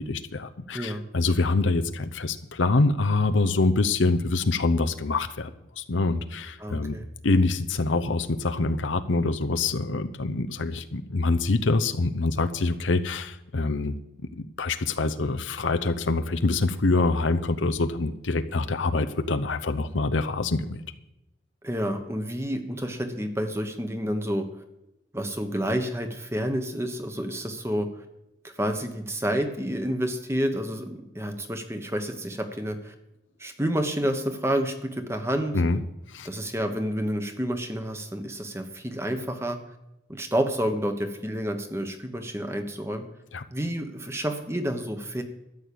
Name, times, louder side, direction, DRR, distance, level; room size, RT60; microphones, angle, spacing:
voice 1, 0.0-5.5 5.8-7.0 7.2-20.8 35.5-35.8 36.1-36.3 43.3-43.4, left 3 dB, 85° left, 9 dB, 0.8 m, -25 dB
voice 2, 6.6-7.1 21.6-24.5 25.1-27.9 28.4-32.9 33.4-35.6 36.2-39.6 40.1-43.0 43.5-45.2, equal, 15° right, 6 dB, 1.2 m, -29 dB
13.0 x 6.6 x 8.6 m, 0.89 s
head